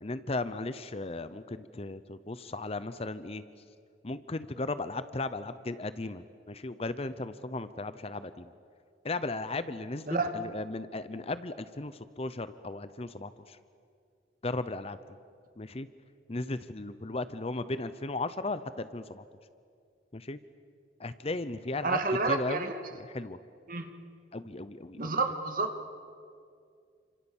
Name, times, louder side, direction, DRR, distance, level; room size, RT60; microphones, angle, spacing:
voice 1, 0.0-3.4 4.0-8.5 9.0-13.6 14.4-15.0 15.6-15.9 16.3-19.2 20.1-20.4 21.0-22.0 22.3-22.7 23.0-23.4 24.3-25.0, left 2 dB, 35° left, 13 dB, 0.8 m, -36 dB
voice 2, 21.8-22.8 23.7-23.9 25.0-25.7, right 3 dB, 50° right, 6 dB, 2.3 m, -29 dB
29.5 x 26.5 x 7.3 m, 2.3 s
head